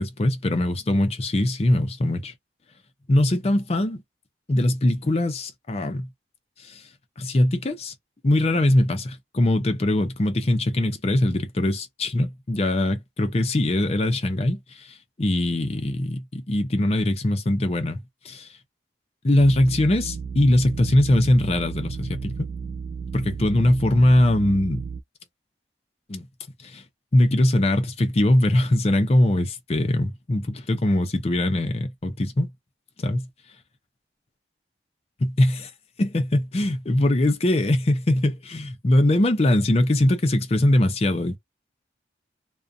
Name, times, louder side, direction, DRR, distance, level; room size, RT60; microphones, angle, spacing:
voice 1, 0.0-2.3 3.1-4.0 4.5-6.1 6.6-6.8 7.2-7.9 8.2-18.0 18.2-18.5 19.2-22.4 23.1-24.8 26.1-26.3 26.6-26.8 27.1-32.5 33.0-33.3 35.2-35.7 36.0-41.4, left 1 dB, 35° left, 0.5 m, -21 dB
sound 1, 19.4-25.0, right 5 dB, 45° right, 0.3 m, -33 dB
2.4 x 2.2 x 2.5 m
head